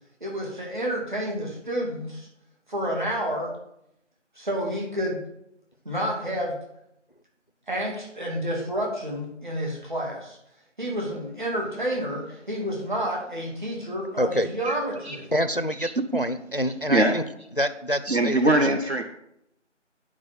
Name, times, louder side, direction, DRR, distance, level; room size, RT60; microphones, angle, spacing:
voice 1, 0.2-2.3 2.7-3.5 4.4-5.2 5.8-6.6 7.7-10.4 10.8-15.3, equal, 40° right, -2 dB, 2.8 m, -29 dB
voice 2, 14.2-14.5 15.3-17.2 17.6-18.7, equal, 50° left, 11 dB, 0.4 m, -27 dB
voice 3, 18.1-19.0, right 1 dB, 60° right, 4 dB, 0.8 m, -21 dB
9.8 x 4.8 x 5.5 m, 0.77 s
figure-of-eight pair, 170°, 37 cm